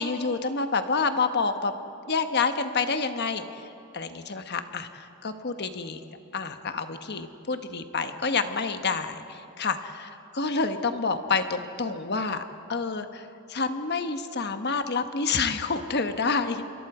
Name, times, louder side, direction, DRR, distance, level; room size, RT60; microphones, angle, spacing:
voice 1, 0.0-1.7 2.1-3.4 3.9-6.0 6.3-12.4 12.7-13.2 13.5-16.6, left 4 dB, 50° left, 8 dB, 1.2 m, -28 dB
29.0 x 22.5 x 4.9 m, 2.9 s
head